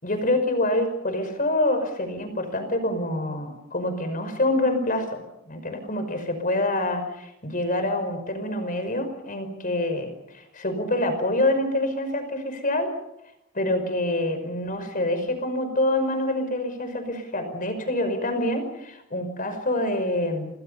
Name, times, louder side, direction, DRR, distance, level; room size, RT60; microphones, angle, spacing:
voice 1, 0.0-12.9 13.5-20.5, left 1 dB, 40° left, 8 dB, 5.5 m, -26 dB
28.5 x 25.5 x 5.6 m, 0.81 s
head